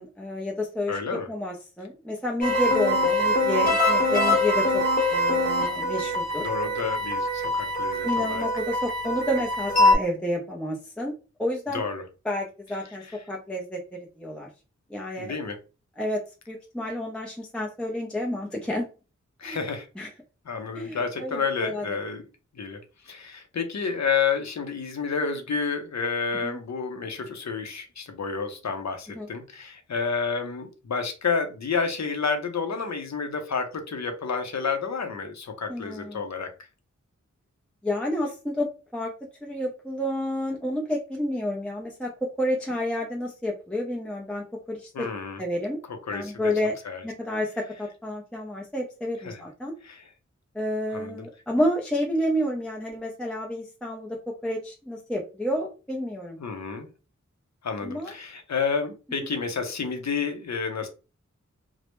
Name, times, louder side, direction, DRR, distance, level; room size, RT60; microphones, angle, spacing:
voice 1, 0.0-4.8 5.1-6.5 8.0-11.1 11.4-11.8 12.2-13.0 13.3-14.5 14.9-15.3 16.0-18.9 19.4-19.6 20.0-20.1 20.7-21.8 26.4-26.6 29.1-29.3 35.7-36.2 37.8-39.1 39.4-45.1 45.4-45.8 46.1-46.8 47.0-49.7 50.5-56.4 57.8-58.1 59.2-59.3, left 1 dB, 5° left, -1 dB, 0.5 m, -30 dB
voice 2, 0.9-1.3 6.4-8.5 11.7-12.0 13.0-13.2 15.2-15.6 19.4-19.9 20.5-22.2 22.5-22.8 23.0-36.5 44.9-45.4 46.1-46.5 46.8-47.0 49.2-49.4 49.8-50.0 50.9-51.3 56.4-56.9 57.6-60.9, left 5 dB, 65° left, 6 dB, 0.6 m, -30 dB
sound 1, 2.4-10.0, left 1 dB, 30° left, 1.0 m, -23 dB
2.0 x 2.0 x 2.9 m, 0.32 s
cardioid pair, 45°, 30 cm